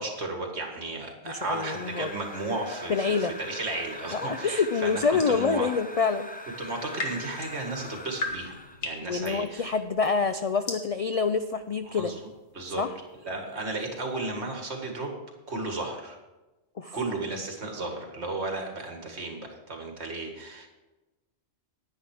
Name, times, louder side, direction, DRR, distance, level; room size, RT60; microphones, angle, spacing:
voice 1, 0.0-5.7 6.6-9.7 11.9-12.1 12.5-12.8 13.2-15.1 15.5-16.2 16.9-20.7, right 2 dB, 65° right, 2 dB, 2.2 m, -34 dB
sound 1, 1.2-8.9, left 1 dB, 10° left, 0.5 m, -42 dB
voice 2, 1.3-2.1 2.9-3.3 4.1-6.3 9.0-12.1 12.8-13.0 16.8-17.0, left 5 dB, 70° left, 9 dB, 0.3 m, -27 dB
sound 2, 4.7-5.5 6.6-14.3, left 2 dB, 55° left, 1.7 m, -40 dB
10.0 x 9.6 x 4.9 m, 1.1 s
omnidirectional pair, 1.2 m